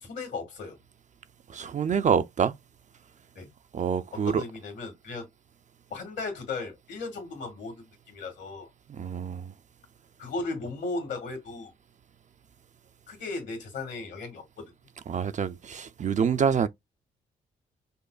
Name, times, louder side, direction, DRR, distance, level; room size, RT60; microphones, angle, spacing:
voice 1, 0.0-0.8 3.4-3.5 4.1-5.3 5.9-8.7 10.2-11.7 13.1-14.7, left 3 dB, 70° left, 1.9 m, -36 dB
voice 2, 1.5-2.5 3.7-4.4 8.9-9.5 15.1-16.7, right 7 dB, 40° right, 0.4 m, -26 dB
5.4 x 2.1 x 2.3 m
supercardioid pair, 55°, 19 cm